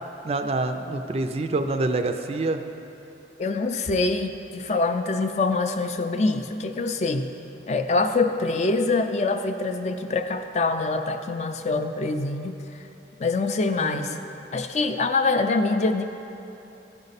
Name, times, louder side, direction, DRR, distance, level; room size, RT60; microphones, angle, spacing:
voice 1, 0.2-2.6 13.8-14.2, right 2 dB, 35° right, 7 dB, 0.3 m, -26 dB
voice 2, 3.4-7.3 7.7-12.9 13.2-14.2 14.5-16.0, left 3 dB, 35° left, 7 dB, 0.4 m, -25 dB
14.0 x 5.3 x 4.1 m, 3.0 s
head